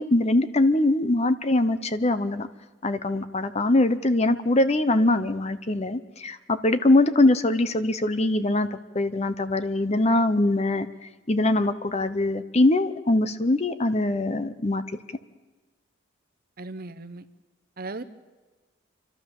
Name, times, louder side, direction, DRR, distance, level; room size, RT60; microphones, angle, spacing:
voice 1, 0.0-2.5 2.8-10.9 11.3-14.8, left 2 dB, 30° left, 12 dB, 0.7 m, -22 dB
voice 2, 16.6-17.2 17.8-18.0, right 3 dB, 45° right, 11 dB, 0.9 m, -36 dB
29.0 x 12.5 x 7.2 m, 1.3 s
head